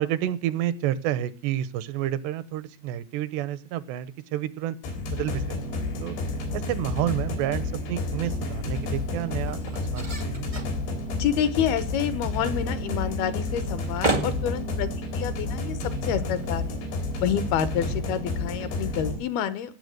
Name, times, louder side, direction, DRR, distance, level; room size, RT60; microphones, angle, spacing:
voice 1, 0.0-4.8 5.1-5.4 5.7-6.2 6.5-10.5 17.9-18.0, right 12 dB, 85° right, 16 dB, 3.0 m, -30 dB
sound 1, 4.8-19.2, left 2 dB, 90° left, 5.4 m, -30 dB
sound 2, 7.6-17.5, right 2 dB, 60° right, 0.4 m, -37 dB
voice 2, 11.1-16.8 17.2-19.8, left 9 dB, 75° left, 13 dB, 2.8 m, -28 dB
17.0 x 7.0 x 7.8 m, 0.36 s
omnidirectional pair, 4.9 m